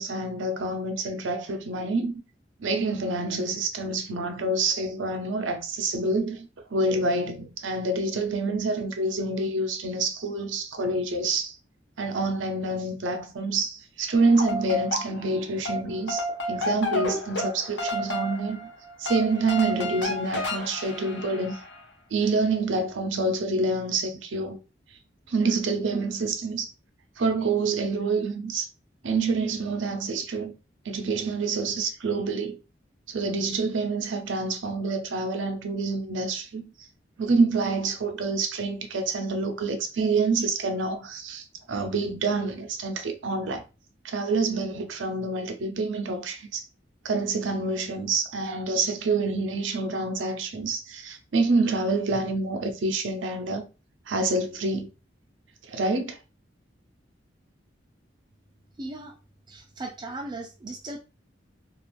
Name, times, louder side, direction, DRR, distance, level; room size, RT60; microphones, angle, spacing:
voice 1, 0.0-2.1 2.6-11.6 12.0-18.6 19.0-21.6 22.1-24.6 25.3-26.7 27.2-28.7 29.0-30.5 30.8-32.6 33.1-36.6 37.2-43.6 44.0-46.6 47.0-53.6 54.1-54.9 55.7-56.2, right 3 dB, 85° right, 0.6 m, -27 dB
sound 1, 14.2-15.4 15.6-21.8, left 1 dB, 65° left, 0.7 m, -31 dB
voice 2, 58.8-59.1 59.5-61.0, right 2 dB, 25° right, 0.3 m, -37 dB
2.4 x 2.4 x 3.0 m
head